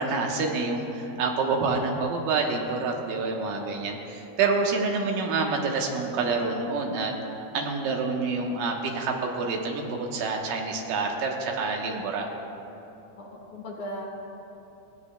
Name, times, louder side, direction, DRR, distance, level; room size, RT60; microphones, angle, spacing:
voice 1, 0.0-7.1 7.5-12.3, right 4 dB, 75° right, 1 dB, 2.6 m, -27 dB
voice 2, 13.2-14.1, equal, 60° left, -1 dB, 2.2 m, -37 dB
19.5 x 15.5 x 2.3 m, 2.9 s
omnidirectional pair, 4.2 m